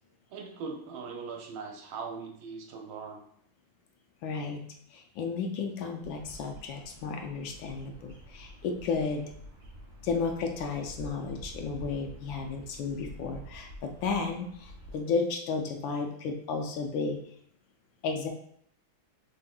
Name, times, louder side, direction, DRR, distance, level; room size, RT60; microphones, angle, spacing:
voice 1, 0.3-3.2, right 5 dB, 80° right, 2 dB, 1.6 m, -40 dB
voice 2, 4.2-4.6 4.9-9.2 10.0-17.2 18.0-18.3, left 4 dB, 75° left, 3 dB, 1.3 m, -33 dB
Bird vocalization bird call bird song, 6.0-15.0, right 1 dB, 40° right, 1.7 m, -48 dB
5.3 x 3.6 x 2.3 m, 0.66 s
omnidirectional pair, 2.3 m